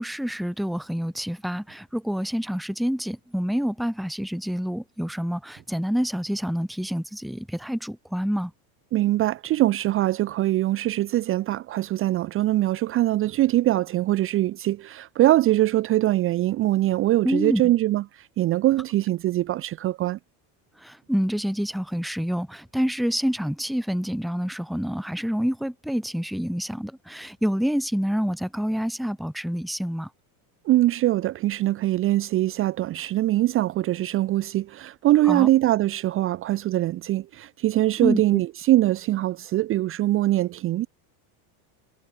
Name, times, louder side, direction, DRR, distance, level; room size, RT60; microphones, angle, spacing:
voice 1, 0.0-8.5 17.2-17.6 20.8-30.1 35.3-35.5 38.0-38.4, equal, ahead, 1.2 m, -27 dB
voice 2, 8.9-20.2 30.6-40.9, right 15 dB, 25° right, 0.9 m, -22 dB
cardioid pair, 170°, 47 cm